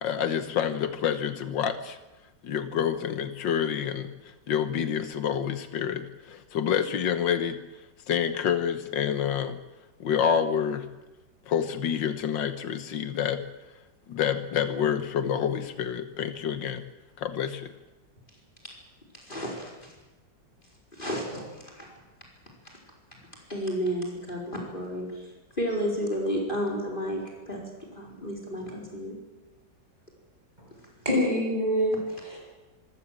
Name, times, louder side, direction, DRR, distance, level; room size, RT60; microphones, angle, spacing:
voice 1, 0.0-2.0 2.4-7.6 8.1-9.6 10.0-10.9 11.5-13.4 14.1-16.8 17.2-17.7, left 8 dB, 85° left, 11 dB, 1.8 m, -28 dB
voice 2, 19.1-19.9 20.9-21.9 23.5-25.2 25.6-27.2 27.5-27.6 27.9-29.2, equal, 25° left, -1 dB, 4.9 m, -32 dB
voice 3, 31.0-32.4, equal, 20° right, -2 dB, 8.3 m, -26 dB
25.0 x 16.5 x 7.6 m, 1.1 s
omnidirectional pair, 2.0 m